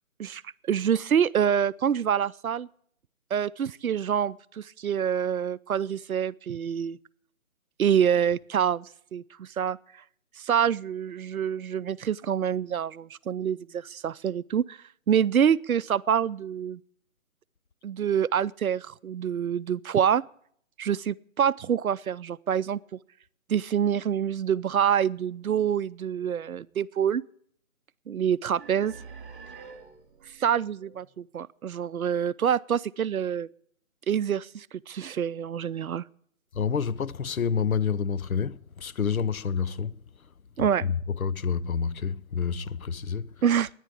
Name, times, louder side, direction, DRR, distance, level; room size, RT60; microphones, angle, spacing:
voice 1, 0.7-2.7 3.3-7.0 7.8-9.8 10.4-14.8 15.1-16.8 17.8-20.2 20.8-23.0 23.5-27.2 28.1-28.9 30.4-33.5 34.1-36.0 40.6-40.8 43.4-43.7, right 8 dB, 90° right, 0.5 m, -26 dB
sound 1, 28.6-31.7, right 5 dB, 40° right, 2.1 m, -47 dB
voice 2, 36.5-39.9 40.8-43.3, left 6 dB, 85° left, 0.7 m, -28 dB
13.5 x 10.0 x 8.5 m
figure-of-eight pair, 160°, 41 cm